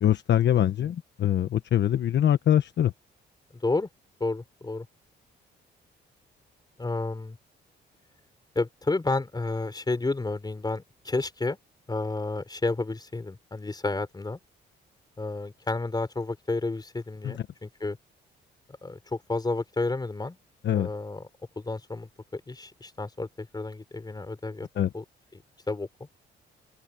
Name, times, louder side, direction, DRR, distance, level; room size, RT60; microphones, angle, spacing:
voice 1, 0.0-2.9 17.2-17.4 20.6-20.9 24.8-24.9, left 10 dB, 65° left, 1.3 m, -23 dB
voice 2, 3.5-3.9 4.2-4.9 6.8-7.4 8.5-11.6 11.9-14.4 15.2-18.0 18.8-20.4 20.7-21.3 21.6-24.7 24.9-25.0 25.7-25.9, left 3 dB, 20° left, 4.8 m, -31 dB
open air
cardioid pair, 90°, 20 cm